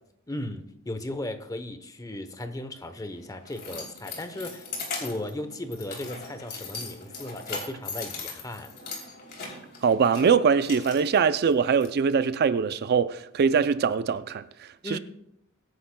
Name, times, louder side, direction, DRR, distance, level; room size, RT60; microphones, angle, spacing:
voice 1, 0.3-4.7 5.0-8.7 14.8-15.0, left 1 dB, 15° left, 0.8 m, -36 dB
Keys jangling, 2.8-11.9, left 4 dB, 45° left, 3.0 m, -39 dB
voice 2, 9.8-14.4 14.9-15.0, right 6 dB, 50° right, 0.4 m, -22 dB
22.5 x 9.7 x 2.2 m
head